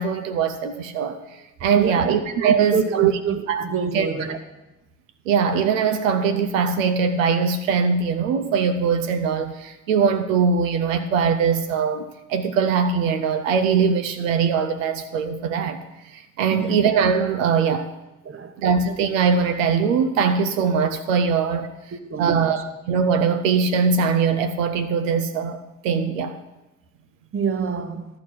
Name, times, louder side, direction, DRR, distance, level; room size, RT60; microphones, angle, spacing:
voice 1, 0.0-3.1 3.5-3.7 3.9-4.1 5.3-17.9 18.6-21.7 22.2-26.4, right 6 dB, 85° right, 0.5 m, -21 dB
voice 2, 1.7-2.1 2.4-4.4 16.5-16.8 18.2-18.5 21.9-22.5 27.3-28.1, right 7 dB, 35° right, 0.9 m, -25 dB
12.0 x 4.8 x 5.8 m
hypercardioid pair, 45°, 38 cm